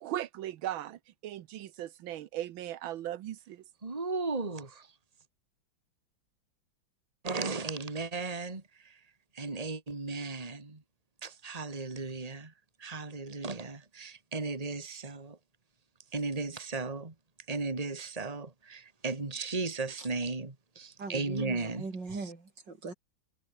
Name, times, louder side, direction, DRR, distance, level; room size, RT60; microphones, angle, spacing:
voice 1, 0.0-3.6, right 12 dB, 85° right, 1.7 m, -38 dB
voice 2, 3.8-4.9 7.2-8.9 9.3-10.8 11.2-12.5 12.8-15.4 16.1-17.1 17.5-21.8, right 3 dB, 20° right, 2.4 m, -36 dB
voice 3, 21.0-22.9, right 3 dB, 60° right, 4.8 m, -40 dB
omnidirectional pair, 2.1 m